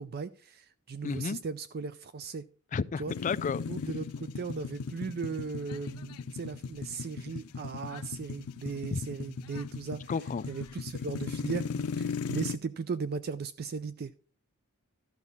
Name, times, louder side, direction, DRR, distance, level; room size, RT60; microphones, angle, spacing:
voice 1, 0.0-2.4 3.0-3.1 3.7-10.1 10.5-14.1, right 5 dB, 45° right, 0.4 m, -37 dB
voice 2, 1.0-1.4 2.7-3.6 8.9-9.0 10.1-10.5, left 5 dB, 35° left, 0.3 m, -31 dB
sound 1, 3.1-12.6, left 5 dB, 90° left, 0.5 m, -37 dB
13.0 x 6.0 x 4.0 m
head